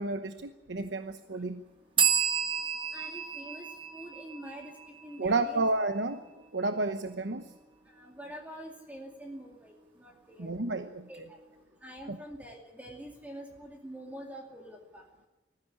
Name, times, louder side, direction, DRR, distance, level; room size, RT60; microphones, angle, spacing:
voice 1, 0.0-1.6 5.2-6.2 6.5-7.5 10.4-11.1 12.1-12.2, right 2 dB, 80° right, 8 dB, 1.0 m, -31 dB
sound 1, 2.0-5.5, right 7 dB, 30° right, 1.5 m, -31 dB
voice 2, 2.9-5.7 7.9-10.5 11.1-11.4 11.8-15.0, equal, 10° right, 1 dB, 2.4 m, -46 dB
19.5 x 15.0 x 9.8 m, 1.1 s
head